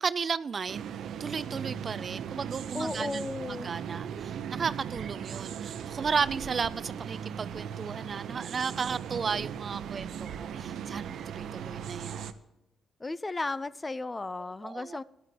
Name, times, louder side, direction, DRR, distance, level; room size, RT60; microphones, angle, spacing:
voice 1, 0.0-3.3 3.6-12.3 14.6-15.0, right 5 dB, 40° right, 16 dB, 0.3 m, -34 dB
sound 1, 0.7-12.3, right 8 dB, 70° right, 0.7 m, -38 dB
voice 2, 2.7-3.7 13.0-15.0, left 3 dB, 20° left, 18 dB, 0.4 m, -34 dB
14.0 x 11.0 x 2.9 m, 0.91 s
cardioid pair, 90°, 0 cm